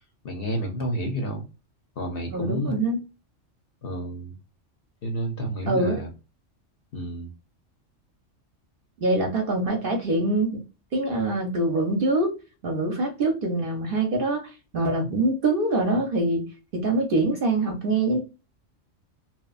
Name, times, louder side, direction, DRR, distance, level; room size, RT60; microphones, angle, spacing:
voice 1, 0.2-1.4 2.0-2.8 3.8-4.3 5.0-6.1 6.9-7.3, right 1 dB, 60° left, 2 dB, 0.7 m, -30 dB
voice 2, 2.3-3.0 5.7-6.0 9.0-10.6 10.9-12.3 12.6-14.4 14.7-16.4 16.7-18.2, right 2 dB, 55° right, 2 dB, 0.7 m, -24 dB
3.0 x 2.1 x 2.3 m, 0.30 s
omnidirectional pair, 1.3 m